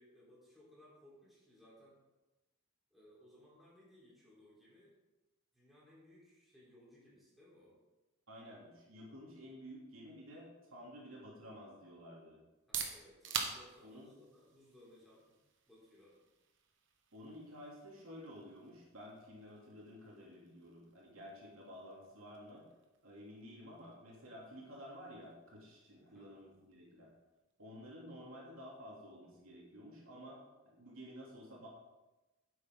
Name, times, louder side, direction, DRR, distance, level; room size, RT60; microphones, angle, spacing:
voice 1, 0.0-2.0 2.9-4.9 5.5-7.8 12.7-15.4 15.7-16.2 26.0-26.3, left 1 dB, ahead, -8 dB, 3.6 m, -62 dB
voice 2, 8.3-12.4 13.8-14.1 17.1-22.7 23.0-27.1 27.6-31.7, equal, 85° right, -4 dB, 2.9 m, -52 dB
sound 1, 12.4-28.1, right 6 dB, 60° right, 1.2 m, -49 dB
10.0 x 7.9 x 3.8 m, 1.1 s
head